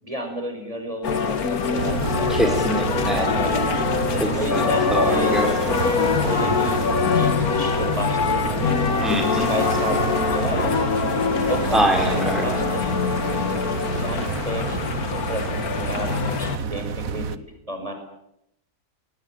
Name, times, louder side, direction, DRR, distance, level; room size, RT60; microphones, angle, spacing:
voice 1, 0.0-2.6 3.1-5.3 5.8-6.8 7.2-10.0 10.3-10.7 11.5-15.6 15.9-17.4 17.7-17.9, equal, 25° right, 5 dB, 5.4 m, -32 dB
sound 1, 1.0-16.6, left 6 dB, 80° left, 2.0 m, -24 dB
sound 2, 1.8-17.4, right 8 dB, 65° right, 1.5 m, -29 dB
voice 2, 2.3-3.3 4.2-4.6 4.9-5.8 9.0-9.5 11.7-12.6 16.0-16.1, equal, ahead, 2 dB, 4.5 m, -24 dB
24.0 x 20.5 x 9.4 m, 0.82 s
omnidirectional pair, 1.6 m